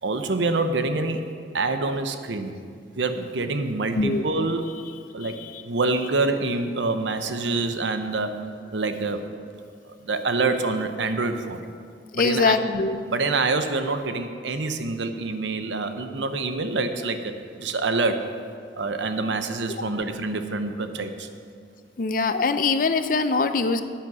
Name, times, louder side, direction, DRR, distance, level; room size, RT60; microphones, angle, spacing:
voice 1, 0.0-1.2 1.5-2.5 3.0-4.6 5.1-5.4 5.7-8.4 8.7-9.2 10.0-11.6 12.1-12.6 13.1-17.3 17.6-18.2 18.8-21.3, right 3 dB, 85° right, 8 dB, 0.8 m, -26 dB
voice 2, 5.2-5.6 12.2-13.0 22.0-23.8, left 4 dB, 45° left, 10 dB, 0.5 m, -23 dB
10.5 x 9.0 x 6.1 m, 2.3 s
head